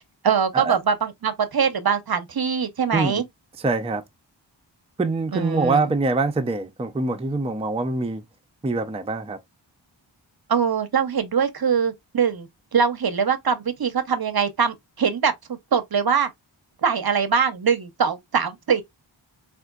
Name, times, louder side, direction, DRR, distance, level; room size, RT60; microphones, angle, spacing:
voice 1, 0.2-3.2 5.3-5.8 10.5-16.3 16.8-18.8, right 6 dB, 55° right, 0.6 m, -23 dB
voice 2, 2.9-3.2 3.6-4.0 5.0-8.2 8.6-9.4, right 3 dB, 15° right, 0.4 m, -24 dB
3.6 x 2.5 x 2.3 m
wide cardioid pair, 50°, 46 cm